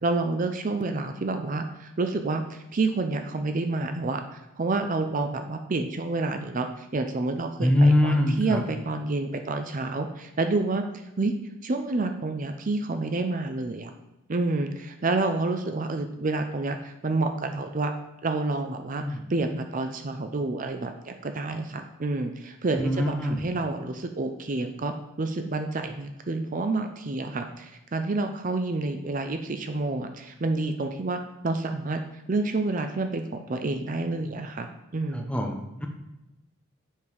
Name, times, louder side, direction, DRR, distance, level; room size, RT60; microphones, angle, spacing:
voice 1, 0.0-4.2 4.6-10.8 11.2-11.3 11.6-13.9 14.3-17.9 18.2-32.0 32.3-35.3, right 3 dB, 40° right, 6 dB, 0.5 m, -29 dB
voice 2, 7.6-8.6 19.0-19.2 22.8-23.4 35.1-35.9, left 1 dB, 5° left, 2 dB, 0.8 m, -23 dB
7.3 x 5.3 x 4.7 m, 0.97 s
head